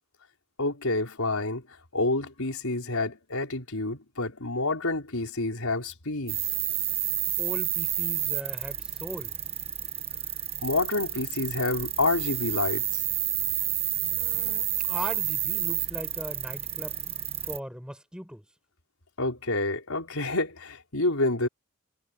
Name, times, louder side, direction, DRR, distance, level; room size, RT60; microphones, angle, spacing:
voice 1, 0.6-1.6 1.9-6.4 10.6-13.0 19.2-21.5, left 2 dB, 80° left, 4.6 m, -28 dB
sound 1, 6.3-17.6, right 11 dB, 25° right, 1.2 m, -30 dB
voice 2, 7.4-9.3 14.1-17.0 17.4-18.4, equal, 5° right, 6.6 m, -39 dB
head